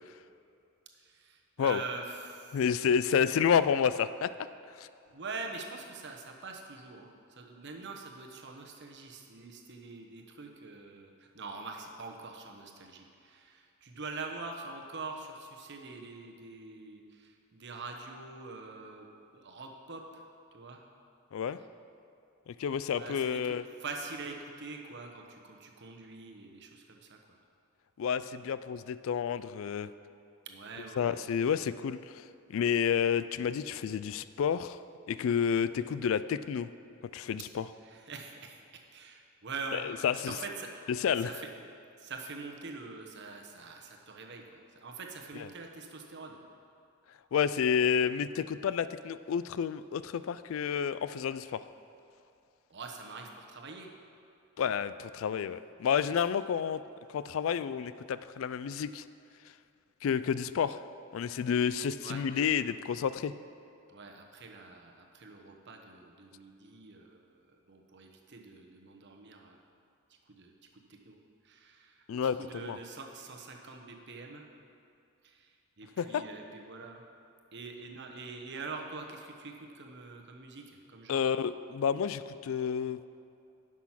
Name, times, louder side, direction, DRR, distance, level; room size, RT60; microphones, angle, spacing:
voice 1, 1.0-2.6 5.1-19.1 19.3-20.2 20.5-20.8 21.6-21.7 22.9-27.2 30.4-31.1 37.8-40.7 41.2-41.5 42.0-46.4 52.7-53.9 62.0-62.2 63.9-69.6 70.3-71.2 71.4-74.5 75.2-77.0 77.5-81.3, right 4 dB, 55° right, 2 dB, 1.0 m, -44 dB
voice 2, 2.5-4.3 4.8-4.9 21.3-21.6 22.5-23.6 28.0-29.9 31.0-32.2 32.5-34.8 35.1-36.7 37.1-37.7 39.7-40.3 40.9-41.3 45.4-45.5 47.3-51.6 54.6-56.8 57.1-59.0 60.0-60.8 61.1-63.3 72.1-72.8 76.0-76.2 81.1-83.0, left 7 dB, 65° left, 15 dB, 0.3 m, -30 dB
10.5 x 6.1 x 5.8 m, 2.6 s
head